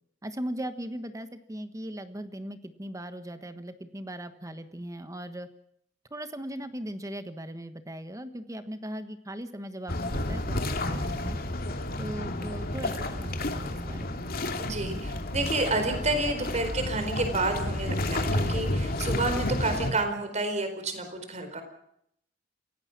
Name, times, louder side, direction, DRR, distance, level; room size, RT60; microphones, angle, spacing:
voice 1, 0.2-5.5 6.1-11.4 12.0-14.2, right 1 dB, 20° right, 10 dB, 1.2 m, -38 dB
sound 1, 9.9-19.9, left 1 dB, 55° left, 2.5 m, -31 dB
voice 2, 14.6-21.6, right 2 dB, 40° right, 7 dB, 4.4 m, -30 dB
28.5 x 17.0 x 6.0 m, 0.72 s
head